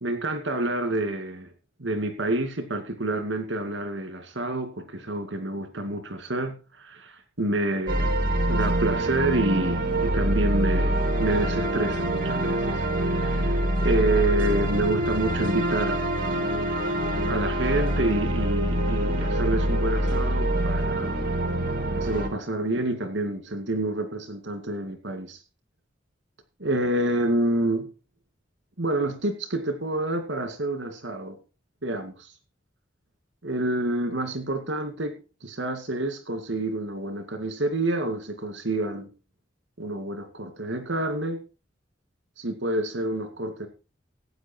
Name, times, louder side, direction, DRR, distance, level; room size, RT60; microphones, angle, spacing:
voice 1, 0.0-1.5 1.8-16.1 17.3-21.2 21.9-25.4 26.6-27.9 28.8-31.4 31.8-32.3 33.4-39.1 39.8-41.4 42.4-43.7, right 1 dB, 70° right, 8 dB, 2.4 m, -28 dB
sound 1, 7.9-22.3, right 1 dB, 50° right, 2.5 m, -25 dB
15.0 x 9.1 x 4.5 m, 0.32 s
head